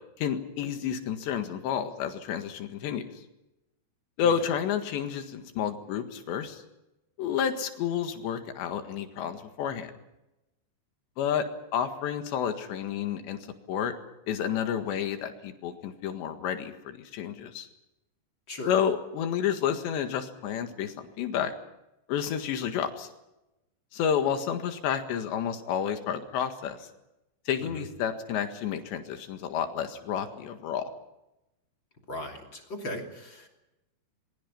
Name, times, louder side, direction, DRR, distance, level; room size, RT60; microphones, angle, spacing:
voice 1, 0.2-3.0 4.2-6.6 7.2-9.9 11.2-11.5 11.7-13.4 13.7-13.9 14.3-17.7 18.7-21.5 22.1-23.1 23.9-26.8 27.5-30.9, left 8 dB, 85° left, 7 dB, 4.0 m, -30 dB
voice 2, 32.1-33.5, left 1 dB, 30° left, 2 dB, 3.2 m, -38 dB
27.0 x 23.0 x 5.8 m, 0.95 s
omnidirectional pair, 5.0 m